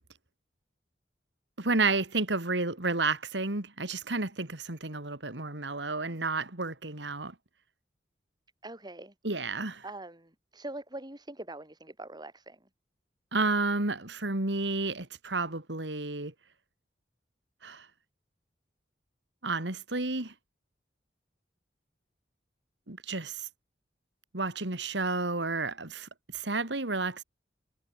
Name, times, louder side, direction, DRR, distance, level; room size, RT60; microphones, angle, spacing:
voice 1, 1.6-7.3 9.2-9.8 13.3-16.3 17.6-17.9 19.4-20.3 22.9-23.5 24.3-27.2, right 3 dB, 75° right, 2.8 m, -31 dB
voice 2, 8.6-9.1 9.8-12.6, right 2 dB, 25° right, 7.4 m, -43 dB
head